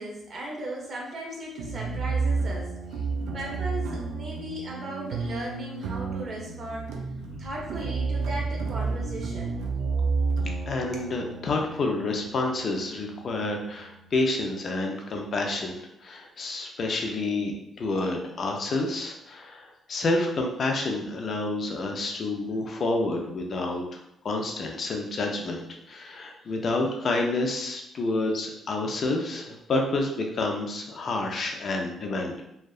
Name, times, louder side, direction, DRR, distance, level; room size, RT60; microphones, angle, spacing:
voice 1, 0.0-2.7 3.3-6.9 7.4-9.5 10.9-11.1, right 1 dB, 45° right, -2 dB, 0.8 m, -37 dB
sound 1, 1.6-14.4, right 4 dB, 85° right, 0.3 m, -31 dB
voice 2, 10.7-24.0 24.2-32.4, left 2 dB, 50° left, 2 dB, 0.4 m, -29 dB
2.7 x 2.2 x 2.3 m, 0.79 s
cardioid pair, 90°, 0 cm